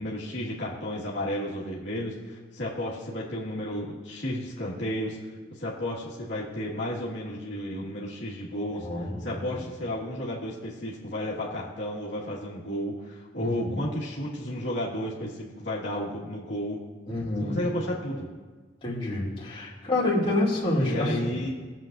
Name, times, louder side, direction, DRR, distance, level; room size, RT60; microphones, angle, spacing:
voice 1, 0.0-5.2 5.5-16.8 17.4-18.3 20.2-20.3 20.8-21.5, left 1 dB, 75° left, -6 dB, 1.8 m, -32 dB
voice 2, 8.7-9.5 13.4-13.8 17.1-17.6 18.8-21.4, left 1 dB, 30° left, -7 dB, 2.5 m, -28 dB
20.0 x 7.4 x 2.6 m, 1.4 s
head